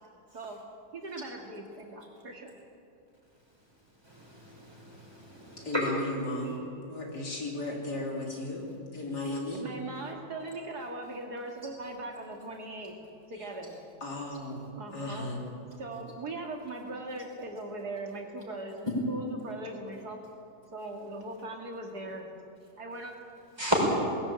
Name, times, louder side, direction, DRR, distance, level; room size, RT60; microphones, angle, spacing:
voice 1, 0.9-2.5 9.5-13.0 13.3-13.8 14.8-15.3 15.8-20.2 20.7-22.3 22.8-23.1, right 2 dB, 65° right, 2 dB, 2.7 m, -40 dB
voice 2, 4.0-5.8 6.4-6.6 23.6-23.9, equal, 15° right, -3 dB, 5.9 m, -32 dB
voice 3, 5.6-6.6 6.9-8.6 8.9-9.6 14.0-14.6 14.9-15.4, left 2 dB, 70° left, -1 dB, 4.0 m, -35 dB
21.0 x 16.5 x 8.9 m, 2.7 s
omnidirectional pair, 1.8 m